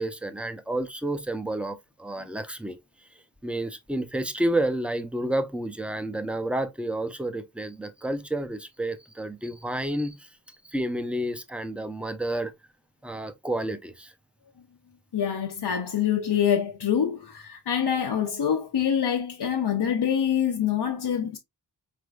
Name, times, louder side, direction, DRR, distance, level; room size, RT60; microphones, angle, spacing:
voice 1, 0.0-2.8 3.4-10.3 10.6-12.5 13.0-14.1, right 1 dB, 5° right, 0.6 m, -30 dB
voice 2, 15.1-21.4, left 8 dB, 75° left, 0.6 m, -25 dB
4.4 x 3.4 x 2.4 m
wide cardioid pair, 50°, 40 cm